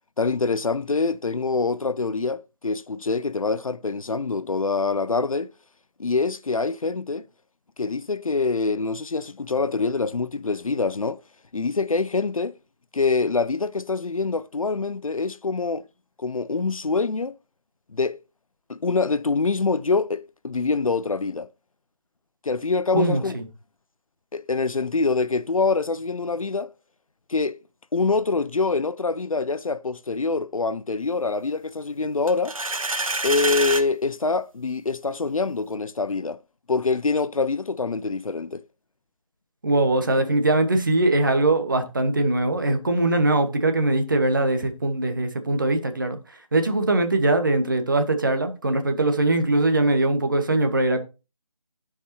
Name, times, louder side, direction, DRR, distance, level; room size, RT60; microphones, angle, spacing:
voice 1, 0.2-5.5 6.0-7.2 7.8-11.2 11.5-12.5 12.9-15.9 16.2-17.4 17.9-18.2 18.7-21.5 22.4-23.4 24.3-26.7 27.3-27.6 27.9-32.6 33.2-36.4 36.7-38.6, left 4 dB, 75° left, 0.5 m, -25 dB
voice 2, 22.9-23.4 39.6-51.0, right 2 dB, 35° right, 0.9 m, -21 dB
sound 1, 32.3-33.9, right 2 dB, 70° right, 0.8 m, -26 dB
13.5 x 4.9 x 2.8 m
figure-of-eight pair, 160°, 18 cm